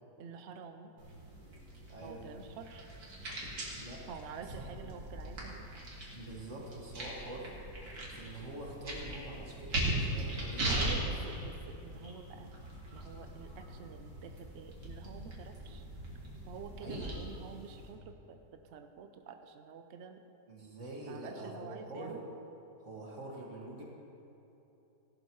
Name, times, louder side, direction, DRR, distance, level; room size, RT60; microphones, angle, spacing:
voice 1, 0.2-0.9 2.0-2.9 4.1-5.8 10.8-12.5 12.9-15.8 16.5-20.2 21.1-22.3, right 6 dB, 70° right, 6 dB, 0.6 m, -48 dB
sound 1, 1.0-17.9, right 1 dB, 90° right, 2.6 m, -40 dB
voice 2, 1.9-2.3 3.7-4.0 6.1-7.6 8.1-11.1 11.4-11.5 16.8-17.1 20.5-22.2 22.8-23.8, right 1 dB, 45° right, -3 dB, 2.2 m, -45 dB
16.5 x 11.5 x 3.1 m, 3.0 s
omnidirectional pair, 1.8 m